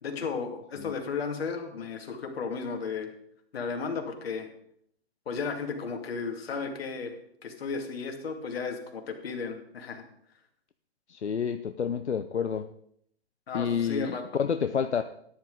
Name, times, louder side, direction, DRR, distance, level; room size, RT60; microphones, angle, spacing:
voice 1, 0.0-3.1 3.5-4.5 5.3-10.0 13.5-14.2, left 5 dB, 65° left, 4 dB, 2.6 m, -34 dB
voice 2, 11.1-12.7 13.5-15.0, left 7 dB, 85° left, 9 dB, 0.7 m, -29 dB
14.0 x 10.5 x 4.0 m, 0.69 s
hypercardioid pair, 125°, 33 cm